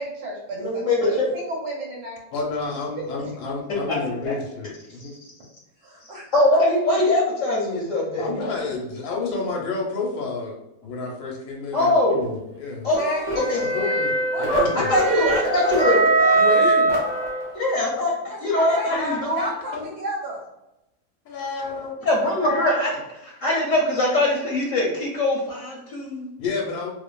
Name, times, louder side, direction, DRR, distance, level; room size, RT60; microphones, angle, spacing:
voice 1, 0.0-2.2 3.0-3.1 5.8-6.2 12.9-14.0 14.3-16.6 18.3-18.9 19.3-20.4, right 1 dB, 85° right, -4 dB, 1.2 m, -33 dB
voice 2, 0.6-1.3 3.9-4.0 4.3-4.4 5.0-5.1 6.3-8.4 11.7-12.2 12.8-13.0 13.5-13.6 14.9-16.0 17.5-19.5 22.0-26.3, left 1 dB, 65° left, -4 dB, 0.9 m, -22 dB
voice 3, 2.3-5.2 8.2-12.9 13.7-15.0 16.3-16.9 18.9-19.5 19.7-19.9 21.2-21.9 26.4-26.9, left 3 dB, 85° left, -1 dB, 1.1 m, -30 dB
sound 1, 12.9-17.7, right 2 dB, 30° right, 0.4 m, -21 dB
2.5 x 2.4 x 2.2 m, 0.90 s
omnidirectional pair, 1.6 m